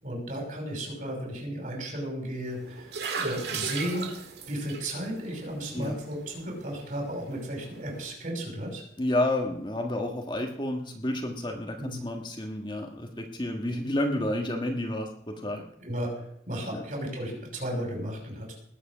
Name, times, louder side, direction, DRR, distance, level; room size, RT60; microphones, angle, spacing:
voice 1, 0.0-8.8 11.8-12.0 15.8-16.1 16.5-18.6, right 1 dB, 45° right, 0 dB, 6.0 m, -34 dB
sound 1, 2.5-8.1, right 4 dB, 65° right, 2.2 m, -39 dB
voice 2, 9.0-15.6 16.7-16.8, left 1 dB, 25° left, 2 dB, 1.5 m, -30 dB
19.5 x 7.9 x 6.2 m, 0.70 s
head